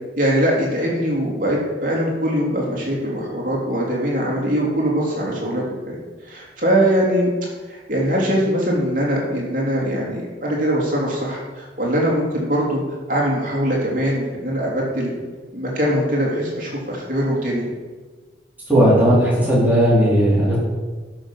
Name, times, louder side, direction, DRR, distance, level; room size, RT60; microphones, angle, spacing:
voice 1, 0.2-5.9 6.3-7.3 7.7-12.8 13.1-15.1 15.5-17.6, equal, 45° right, -3 dB, 3.3 m, -22 dB
voice 2, 18.7-20.6, equal, 10° right, -7 dB, 4.2 m, -15 dB
12.0 x 6.6 x 6.3 m, 1.4 s
head